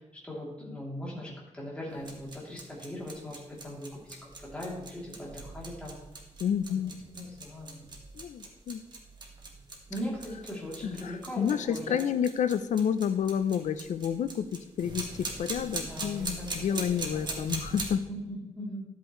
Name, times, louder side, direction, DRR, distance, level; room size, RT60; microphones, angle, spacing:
voice 1, 0.2-6.0 6.7-6.8 7.1-7.8 9.9-12.0 15.8-17.4 18.1-18.8, equal, 10° left, -5 dB, 2.9 m, -40 dB
sound 1, 1.9-17.9, right 3 dB, 40° right, 1.5 m, -41 dB
voice 2, 6.4-6.9 8.1-8.8 10.8-18.1, left 8 dB, 85° left, 12 dB, 0.6 m, -30 dB
12.5 x 8.2 x 3.1 m, 1.0 s
wide cardioid pair, 165°, 12 cm